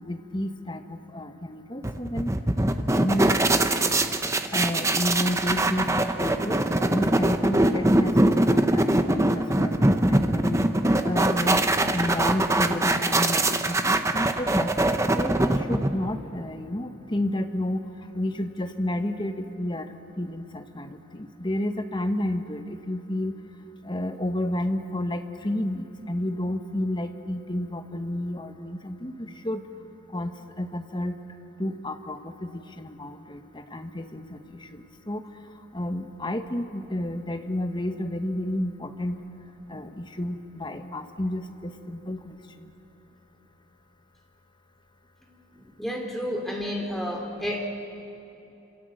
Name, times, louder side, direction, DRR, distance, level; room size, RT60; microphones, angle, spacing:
voice 1, 0.0-2.3 3.0-3.4 4.5-10.6 11.0-11.6 11.9-17.8 18.1-19.9 20.2-23.3 23.8-29.6 30.1-31.2 31.6-35.2 35.7-39.2 39.7-42.4, left 1 dB, 20° left, 6 dB, 1.2 m, -31 dB
sound 1, 1.8-16.2, right 1 dB, 15° right, 0.9 m, -23 dB
voice 2, 45.8-47.6, equal, ahead, -1 dB, 3.1 m, -31 dB
27.5 x 27.0 x 7.9 m, 2.9 s
head